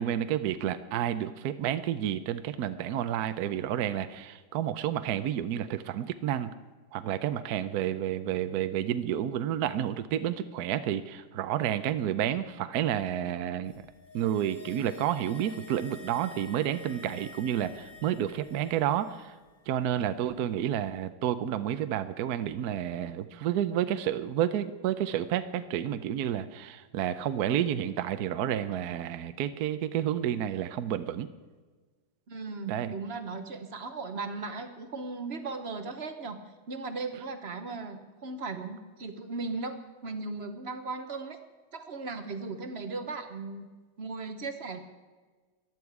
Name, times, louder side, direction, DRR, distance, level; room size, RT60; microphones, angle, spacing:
voice 1, 0.0-6.5 6.9-13.7 14.1-19.4 19.7-31.3 32.7-32.9, right 10 dB, 65° right, 11 dB, 1.1 m, -30 dB
sound 1, 13.7-19.2 19.5-19.6, left 2 dB, 25° left, 3.6 m, -50 dB
voice 2, 32.3-36.4 36.7-41.4 41.7-43.7 44.0-44.8, right 3 dB, 40° right, 8 dB, 1.0 m, -37 dB
15.0 x 11.0 x 4.8 m, 1.4 s
omnidirectional pair, 2.0 m